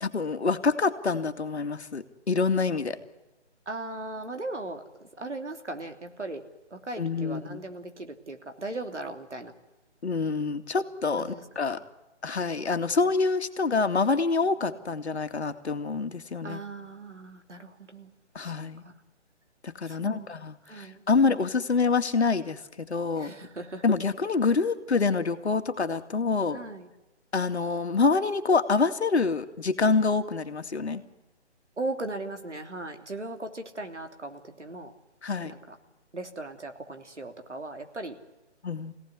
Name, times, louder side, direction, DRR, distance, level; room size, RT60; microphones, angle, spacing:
voice 1, 0.0-3.0 7.0-7.6 10.0-11.8 12.2-16.6 18.4-18.8 19.6-23.3 23.8-26.6 27.3-31.0 35.2-35.5 38.6-38.9, left 4 dB, 70° left, 8 dB, 2.3 m, -26 dB
voice 2, 3.7-4.8 5.2-6.4 6.7-9.5 11.2-11.4 16.4-18.1 20.0-20.2 20.7-21.2 23.2-23.8 26.5-26.9 31.8-34.9 35.4-35.7 36.1-38.1, right 2 dB, 90° right, 6 dB, 3.2 m, -38 dB
25.5 x 17.5 x 9.8 m, 1.0 s
figure-of-eight pair, 150°, 34 cm